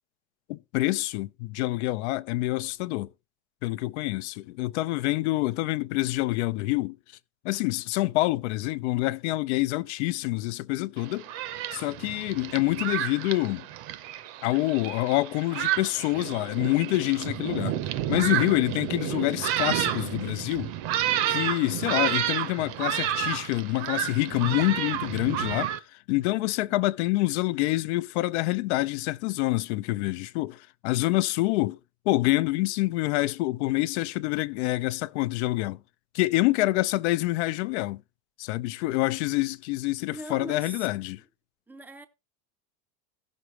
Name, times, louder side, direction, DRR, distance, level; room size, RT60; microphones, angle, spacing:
voice 1, 0.5-3.1 3.6-7.0 7.4-11.3 11.7-13.7 14.4-17.7 18.1-20.7 21.3-31.8 32.1-35.8 36.1-38.0 38.4-41.2, left 19 dB, 70° left, 0.6 m, -27 dB
Thunderstorm, 11.0-25.8, right 11 dB, 50° right, 0.7 m, -30 dB
voice 2, 40.1-40.9 41.7-42.1, right 1 dB, 5° right, 0.5 m, -40 dB
16.0 x 6.3 x 3.1 m
cardioid pair, 165°, 34 cm